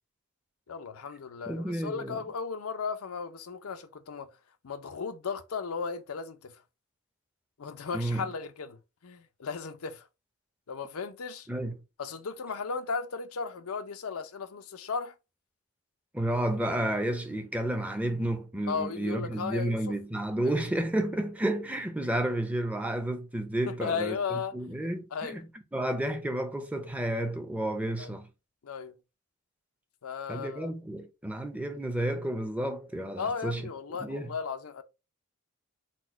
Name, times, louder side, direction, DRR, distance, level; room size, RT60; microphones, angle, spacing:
voice 1, 0.7-4.3 4.6-6.5 7.6-8.8 9.0-10.1 10.7-11.5 12.0-15.1 18.7-20.0 20.4-20.6 23.7-24.5 25.1-25.4 28.0-28.1 28.6-28.9 30.0-30.7 33.2-34.8, left 5 dB, 85° left, 0.6 m, -35 dB
voice 2, 1.5-2.2 7.9-8.3 11.5-11.8 16.1-25.5 25.7-28.3 30.3-33.6 34.0-34.3, right 1 dB, 5° right, 0.6 m, -31 dB
4.2 x 2.2 x 4.3 m
head